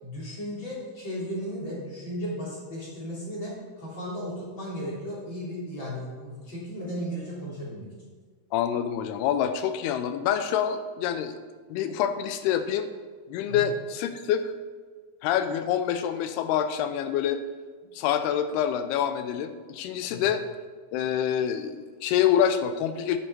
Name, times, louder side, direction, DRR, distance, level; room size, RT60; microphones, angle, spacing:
voice 1, 0.0-7.9 13.5-13.7 20.1-20.3, equal, 30° left, -7 dB, 3.7 m, -35 dB
voice 2, 8.5-11.4 11.7-12.9 13.3-14.5 15.2-17.4 17.9-20.4 20.9-23.2, left 9 dB, 85° left, 10 dB, 2.7 m, -26 dB
9.7 x 8.5 x 4.7 m, 1.5 s
omnidirectional pair, 4.6 m